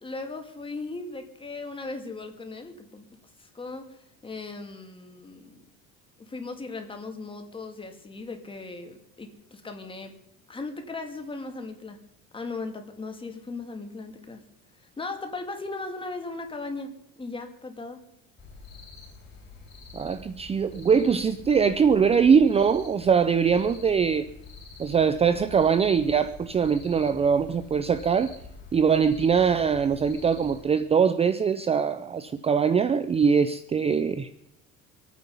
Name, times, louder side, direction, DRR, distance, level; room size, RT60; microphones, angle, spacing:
voice 1, 0.0-3.0 3.4-5.6 6.2-10.2 10.5-12.0 12.3-14.4 14.8-18.0, left 3 dB, 15° left, 2.4 m, -37 dB
sound 1, 18.4-30.7, left 3 dB, 35° left, 4.7 m, -46 dB
voice 2, 19.9-24.3 24.8-28.3 28.7-34.3, right 6 dB, 20° right, 0.6 m, -22 dB
25.0 x 9.3 x 5.5 m
cardioid pair, 120°, 29 cm